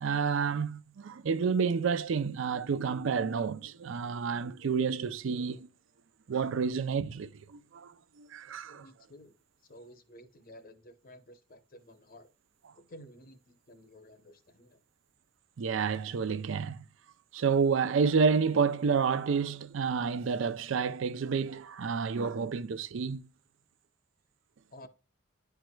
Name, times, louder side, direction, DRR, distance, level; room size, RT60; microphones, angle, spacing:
voice 1, 0.0-5.7 6.3-7.9 8.2-8.9 15.6-16.8 17.3-23.3, right 5 dB, 70° right, 0.4 m, -29 dB
voice 2, 8.8-9.3 9.7-12.3 12.7-14.8 24.7-24.9, equal, 45° left, 0.8 m, -53 dB
10.0 x 4.6 x 2.2 m
head